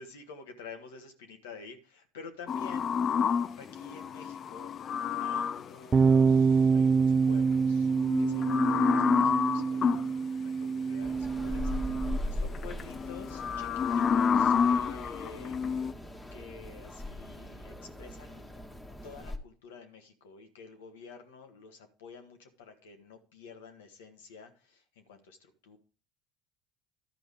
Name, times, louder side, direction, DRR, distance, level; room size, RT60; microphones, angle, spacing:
voice 1, 0.0-2.9 3.6-4.7 5.2-7.9 8.2-11.7 12.3-15.6 16.3-18.5 19.0-25.8, left 4 dB, 80° left, 6 dB, 1.6 m, -49 dB
sound 1, 2.5-5.7 7.9-10.1 11.5-12.1 12.5-15.9, left 6 dB, 45° left, 0.4 m, -29 dB
sound 2, 5.9-12.2, right 5 dB, 30° right, 0.3 m, -26 dB
sound 3, 11.0-19.4, left 1 dB, 15° left, 1.6 m, -40 dB
12.0 x 5.2 x 4.9 m, 0.39 s
hypercardioid pair, 70°, 0 cm